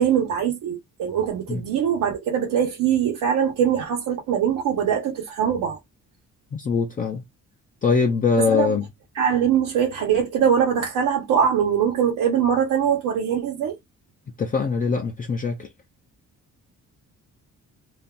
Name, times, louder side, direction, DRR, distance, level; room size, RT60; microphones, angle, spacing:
voice 1, 0.0-5.8 8.5-8.8 9.2-13.8, right 8 dB, 85° right, 1.0 m, -22 dB
voice 2, 6.5-7.2 7.8-8.9 14.4-15.7, left 5 dB, 25° left, 0.4 m, -22 dB
2.6 x 2.3 x 3.6 m
cardioid pair, 150°, 31 cm